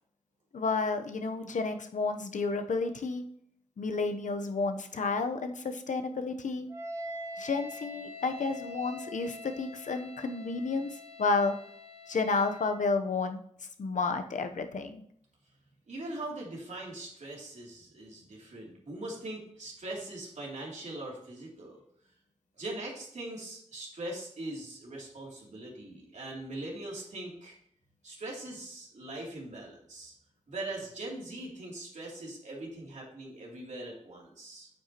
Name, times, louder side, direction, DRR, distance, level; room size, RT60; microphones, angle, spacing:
voice 1, 0.5-3.2 3.8-6.7 7.4-11.6 12.1-13.4 13.8-15.0, left 4 dB, 85° left, 7 dB, 0.8 m, -31 dB
Wind instrument woodwind instrument, 6.7-12.9, left 1 dB, 30° right, 2.3 m, -44 dB
voice 2, 15.9-21.8 22.6-27.5 28.0-30.1 30.5-34.7, right 2 dB, 70° right, -3 dB, 2.8 m, -41 dB
8.9 x 8.0 x 2.9 m, 0.66 s
wide cardioid pair, 105°, 13 cm